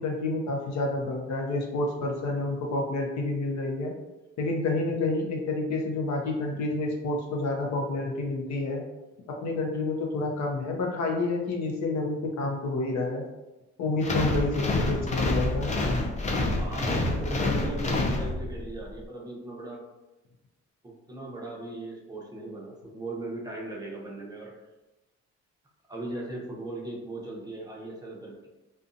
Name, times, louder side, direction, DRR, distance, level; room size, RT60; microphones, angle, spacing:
voice 1, 0.0-3.9 4.4-8.8 9.4-13.2 13.8-15.7, left 2 dB, 65° left, 1 dB, 0.6 m, -29 dB
sound 1, 14.0-18.7, left 2 dB, 25° left, 0.4 m, -27 dB
voice 2, 16.6-19.8 20.8-24.5 25.9-28.5, right 2 dB, 15° right, -4 dB, 0.6 m, -38 dB
2.5 x 2.2 x 2.5 m, 1.0 s
cardioid pair, 90°, 30 cm